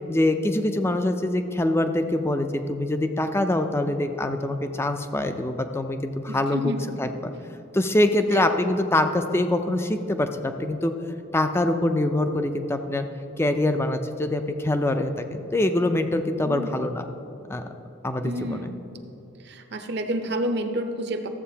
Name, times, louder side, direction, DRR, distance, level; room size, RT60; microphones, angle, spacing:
voice 1, 0.1-6.7 7.0-7.3 7.7-10.9 11.3-13.0 13.4-17.0 17.5-17.6 18.0-18.7, left 1 dB, 10° left, 7 dB, 0.4 m, -24 dB
voice 2, 6.3-6.9 8.3-8.6 16.4-16.8 18.2-18.8 19.4-21.3, right 1 dB, 55° right, 6 dB, 0.7 m, -30 dB
13.5 x 7.8 x 2.8 m, 3.0 s
head